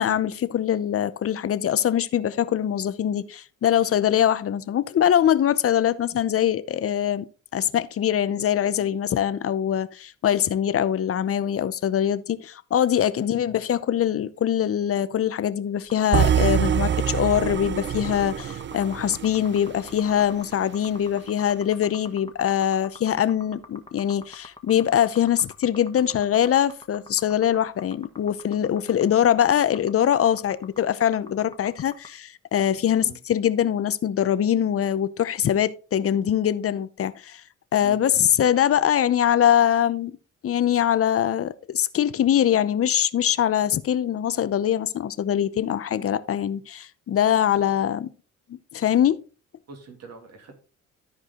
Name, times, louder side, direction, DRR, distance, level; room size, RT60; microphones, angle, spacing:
voice 1, 0.0-7.3 7.5-37.4 37.7-40.1 40.4-48.1 48.5-49.2, left 10 dB, 50° left, 0.7 m, -23 dB
sound 1, 15.8-32.1, left 2 dB, 15° left, 1.4 m, -45 dB
sound 2, 16.1-20.2, right 9 dB, 40° right, 0.5 m, -25 dB
voice 2, 49.7-50.6, right 5 dB, 55° right, 2.5 m, -44 dB
13.5 x 4.8 x 3.8 m
cardioid pair, 90°, 30 cm